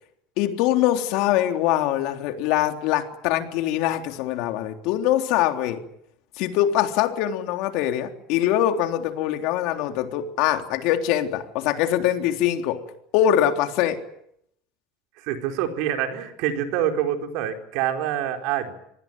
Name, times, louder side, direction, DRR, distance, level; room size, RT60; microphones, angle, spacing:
voice 1, 0.4-5.8 6.4-12.8 13.1-14.0, left 12 dB, 65° left, 6 dB, 3.6 m, -23 dB
voice 2, 15.2-18.7, right 10 dB, 70° right, 5 dB, 4.6 m, -26 dB
26.5 x 19.5 x 9.1 m, 0.72 s
supercardioid pair, 125°, 0 cm